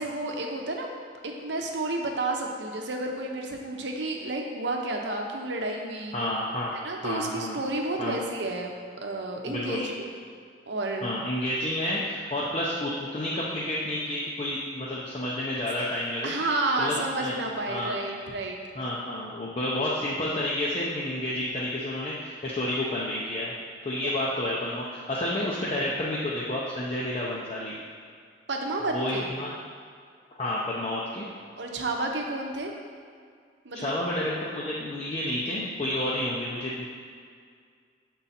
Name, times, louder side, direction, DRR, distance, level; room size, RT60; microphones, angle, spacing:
voice 1, 0.0-6.2 6.7-10.2 10.7-11.1 16.2-18.6 24.0-24.1 28.5-29.3 31.6-32.7 33.6-33.9, right 2 dB, 70° right, 1 dB, 0.8 m, -31 dB
voice 2, 6.1-6.7 7.0-7.6 8.0-8.2 9.5-9.8 11.0-16.3 16.8-17.4 17.7-17.9 18.7-23.5 23.8-27.7 28.9-29.5 30.4-31.2 33.7-36.9, left 1 dB, 35° left, -6 dB, 0.6 m, -30 dB
7.0 x 3.9 x 4.2 m, 2.1 s
head